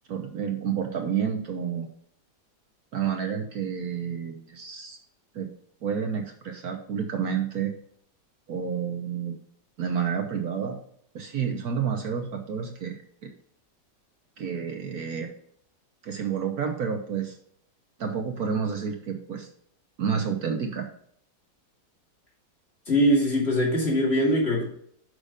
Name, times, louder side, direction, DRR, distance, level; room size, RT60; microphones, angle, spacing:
voice 1, 0.1-1.9 2.9-5.0 5.3-5.5 5.8-7.7 8.5-9.4 9.8-10.8 11.1-13.3 14.4-15.3 16.0-17.4 18.0-19.5 20.0-20.9, right 7 dB, 60° right, 4 dB, 1.3 m, -30 dB
voice 2, 22.9-24.7, equal, 35° left, -4 dB, 2.9 m, -22 dB
6.5 x 5.8 x 5.0 m, 0.64 s
omnidirectional pair, 1.9 m